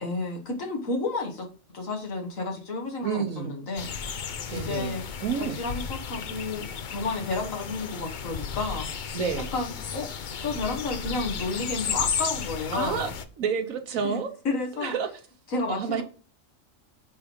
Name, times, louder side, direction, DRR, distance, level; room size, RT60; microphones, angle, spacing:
voice 1, 0.0-1.5 1.7-3.9 4.5-5.0 5.4-8.9 9.5-10.1 10.4-13.1 14.0-14.2 14.4-14.9 15.5-16.0, left 3 dB, 75° left, 2.0 m, -31 dB
voice 2, 3.0-3.6 4.5-5.6 9.1-9.5 12.7-13.1 13.4-14.3 14.8-15.1 15.7-16.0, right 6 dB, 85° right, 1.4 m, -29 dB
sound 1, 3.8-13.2, left 6 dB, 50° left, 0.6 m, -34 dB
9.2 x 3.5 x 5.2 m
omnidirectional pair, 1.4 m